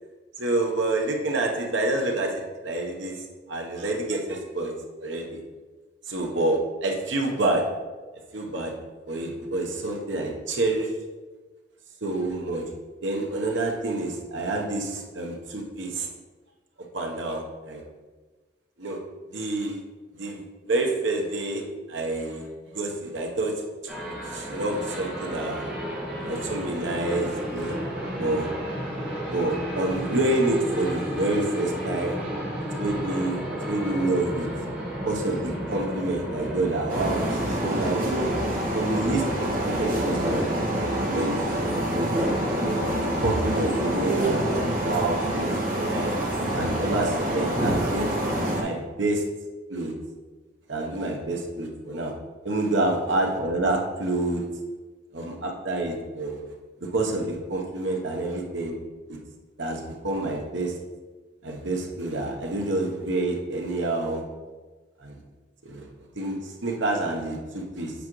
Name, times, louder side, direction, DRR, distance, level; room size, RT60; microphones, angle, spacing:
voice 1, 0.4-4.7 5.0-5.4 6.1-7.6 8.3-8.7 9.1-10.9 12.0-12.6 13.0-16.1 16.9-17.8 18.8-19.0 19.3-19.8 20.1-20.4 20.7-23.5 24.3-25.7 26.2-27.8 28.2-28.5 29.3-32.2 32.8-34.5 35.0-38.3 38.7-39.5 39.8-40.5 40.8-41.3 41.9-42.1 42.6-46.1 46.5-48.1 48.6-49.2 49.7-49.9 50.7-52.1 52.4-54.4 55.1-56.4 56.8-58.7 59.1-59.2 59.6-60.7 61.4-64.2 65.0-65.2 65.6-65.9 66.1-67.9, right 2 dB, 75° right, 1 dB, 1.0 m, -28 dB
sound 1, 23.9-43.5, equal, 10° right, 1.5 m, -34 dB
sound 2, 36.9-48.6, right 1 dB, 45° right, 1.6 m, -26 dB
8.2 x 4.9 x 3.1 m, 1.3 s
head